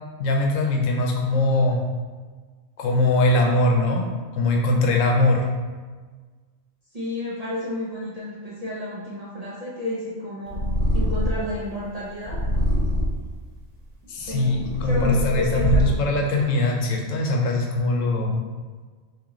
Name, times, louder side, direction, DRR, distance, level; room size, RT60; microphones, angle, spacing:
voice 1, 0.2-1.8 2.8-4.0 4.3-5.4 14.1-18.4, left 2 dB, 85° left, 0 dB, 1.0 m, -21 dB
voice 2, 6.9-10.6 10.9-12.4 14.3-14.6 14.8-16.1, left 1 dB, 45° right, -7 dB, 0.5 m, -31 dB
Purr, 10.5-11.6 12.2-13.3 14.0-16.1, equal, 90° right, 1.3 m, -24 dB
3.6 x 2.9 x 3.0 m, 1.4 s
omnidirectional pair, 1.3 m